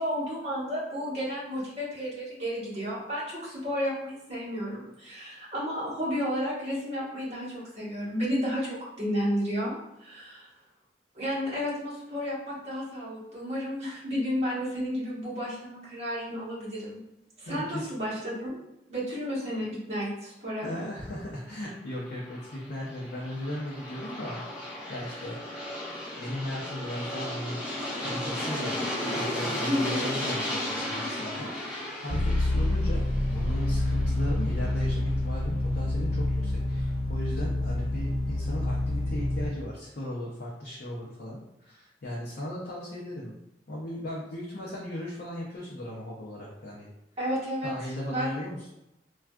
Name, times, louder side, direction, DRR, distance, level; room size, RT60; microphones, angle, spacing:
voice 1, 0.0-10.5 11.1-17.0 17.4-18.6 18.9-20.7 29.7-30.1 47.2-47.7 48.1-48.4, equal, 40° right, -8 dB, 1.2 m, -32 dB
voice 2, 17.5-17.9 20.6-24.4 24.9-25.4 25.9-27.6 28.0-28.8 29.1-43.3 43.7-46.9 47.6-48.7, left 1 dB, 60° left, -5 dB, 0.6 m, -37 dB
Aircraft, 22.1-34.9, left 1 dB, 5° right, 0.7 m, -35 dB
sound 1, 32.1-39.5, left 1 dB, 80° left, 0.9 m, -27 dB
3.4 x 2.3 x 2.2 m, 0.86 s
head